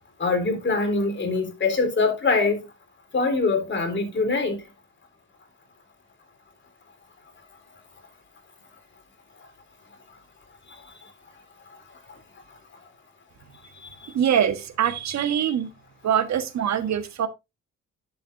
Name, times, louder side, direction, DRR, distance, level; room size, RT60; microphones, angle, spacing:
voice 1, 0.2-2.6 3.1-4.6 13.8-13.9, left 3 dB, 40° left, 3.9 m, -23 dB
voice 2, 14.1-15.7 16.0-17.3, right 9 dB, 65° right, 1.4 m, -23 dB
11.5 x 7.1 x 2.6 m
cardioid pair, 90°, 30 cm